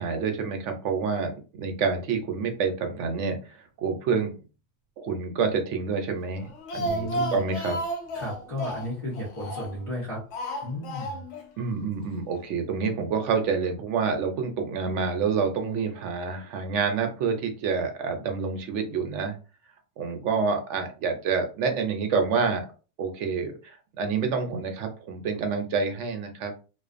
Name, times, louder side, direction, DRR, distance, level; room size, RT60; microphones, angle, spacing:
voice 1, 0.0-4.3 5.0-7.8 11.6-19.4 20.0-22.7 23.0-26.5, right 5 dB, 75° right, 5 dB, 0.9 m, -28 dB
Speech, 6.4-9.9 10.3-11.5 11.7-11.8 12.1-12.2, equal, 75° left, 0.9 m, -33 dB
voice 2, 6.8-7.4 8.1-10.2 10.6-11.2, left 1 dB, 35° left, -8 dB, 0.7 m, -33 dB
2.5 x 2.2 x 2.4 m, 0.35 s
omnidirectional pair, 1.2 m